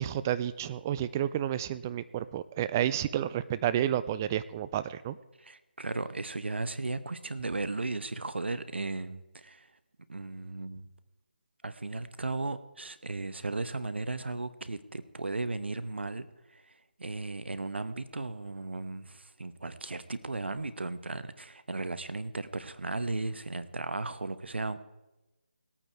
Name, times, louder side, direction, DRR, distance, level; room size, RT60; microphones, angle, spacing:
voice 1, 0.0-5.2, right 11 dB, 15° right, 14 dB, 0.3 m, -30 dB
voice 2, 5.4-9.7 10.1-10.9 11.6-24.8, right 3 dB, 80° right, 13 dB, 1.1 m, -36 dB
18.5 x 8.9 x 4.6 m, 1.0 s
figure-of-eight pair, 160°, 6 cm